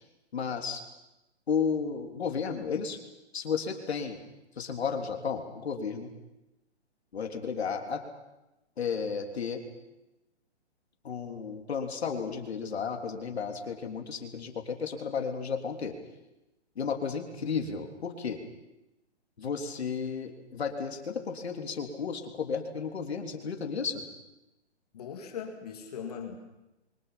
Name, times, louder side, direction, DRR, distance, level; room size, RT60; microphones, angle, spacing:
voice 1, 0.3-0.8 1.5-3.0 3.3-4.2 4.6-6.1 7.1-8.0 8.8-9.6 11.0-15.9 16.8-18.4 19.4-24.0, left 6 dB, 65° left, 3 dB, 3.6 m, -33 dB
voice 2, 24.9-26.4, left 7 dB, 35° left, 3 dB, 2.4 m, -39 dB
28.5 x 24.0 x 5.9 m, 0.96 s
hypercardioid pair, 175°, 34 cm